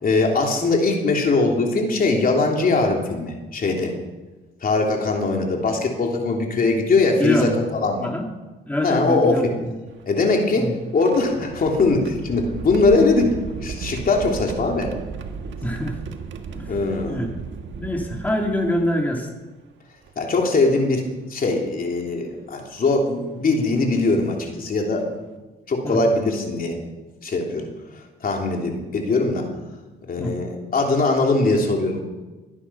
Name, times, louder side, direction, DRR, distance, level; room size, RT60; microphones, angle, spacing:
voice 1, 0.0-3.9 4.6-8.1 8.8-9.5 10.1-13.4 13.6-14.9 16.7-17.2 20.2-25.1 25.7-26.8 27.2-27.7 28.2-29.5 30.0-32.0, left 3 dB, 45° left, 1 dB, 3.4 m, -21 dB
voice 2, 7.2-7.5 8.0-8.3 8.7-9.7 10.6-10.7 15.6-16.0 16.5-16.7 17.1-17.3 17.8-19.3 25.8-26.0 30.2-30.3, left 1 dB, 10° left, 1 dB, 2.5 m, -24 dB
sound 1, 9.9-19.2 20.1-20.2 21.6-21.8 22.6-22.8 24.4-24.5 24.9-25.1, right 6 dB, 70° right, 1.6 m, -36 dB
22.0 x 9.9 x 5.9 m, 1.2 s
cardioid pair, 90°, 20 cm